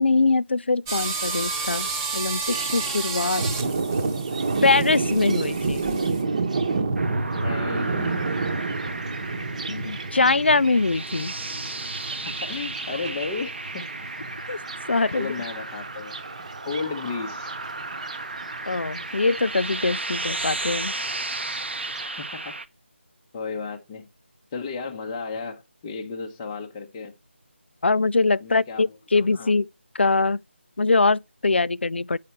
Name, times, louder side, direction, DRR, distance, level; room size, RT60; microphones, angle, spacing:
voice 1, 0.0-3.4 4.6-5.8 9.7-11.3 14.5-14.6 14.9-15.3 18.7-20.9 27.8-29.7 29.9-30.4 30.8-32.2, left 3 dB, 60° left, 0.4 m, -22 dB
sound 1, 0.9-6.2, right 4 dB, 10° right, 1.2 m, -31 dB
Thunder, 2.5-22.1, right 3 dB, 35° right, 1.0 m, -30 dB
sound 2, 7.0-22.7, right 2 dB, 65° right, 0.8 m, -35 dB
voice 2, 7.3-8.2 12.2-13.9 15.1-16.2 16.7-17.5 22.0-22.5 23.3-24.1 24.5-27.1 28.4-28.8 29.1-29.5, left 4 dB, 15° left, 0.7 m, -33 dB
9.0 x 5.7 x 4.4 m
figure-of-eight pair, 160°, 7 cm